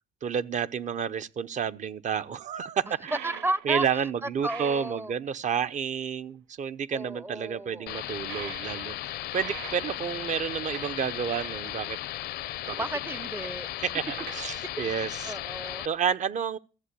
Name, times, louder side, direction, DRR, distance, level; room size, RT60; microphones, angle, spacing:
voice 1, 0.2-3.3 3.6-12.0 12.7-12.8 13.8-15.3 15.8-16.6, right 7 dB, 45° right, 0.9 m, -30 dB
sound 1, 3.0-3.8 4.1-5.1 5.7-5.9 6.2-6.3 8.2-8.7 9.1-10.9 11.3-11.6 12.4-12.7 13.1-13.7 14.1-14.6, right 11 dB, 85° right, 1.0 m, -43 dB
voice 2, 3.2-3.8 4.4-5.1 6.9-7.9 12.8-13.7 15.3-15.9, right 2 dB, 15° right, 0.6 m, -33 dB
sound 2, 7.9-15.9, left 15 dB, 70° left, 0.7 m, -36 dB
14.5 x 7.8 x 8.3 m
cardioid pair, 110°, 17 cm